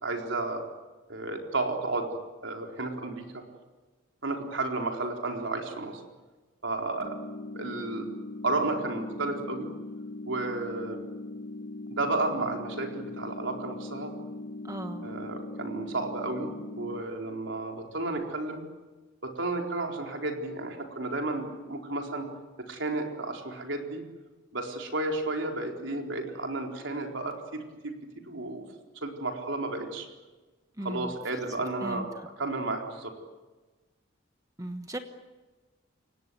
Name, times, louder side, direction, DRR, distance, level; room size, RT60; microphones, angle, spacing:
voice 1, 0.0-0.6 1.1-2.2 2.4-3.4 4.2-6.0 6.6-7.1 7.5-8.1 8.4-9.7 10.3-11.0 11.9-14.1 15.0-16.5 16.8-18.6 19.2-22.3 22.7-24.0 24.5-28.0 28.2-28.6 29.0-30.1 30.8-32.1 32.4-33.1, right 2 dB, 70° right, 2 dB, 4.2 m, -32 dB
sound 1, 7.0-17.0, left 2 dB, 45° left, 1.8 m, -40 dB
voice 2, 14.6-15.1 30.8-31.2 31.8-32.0 34.6-35.0, right 1 dB, 15° right, 7 dB, 1.2 m, -36 dB
29.5 x 17.5 x 9.4 m, 1.2 s
head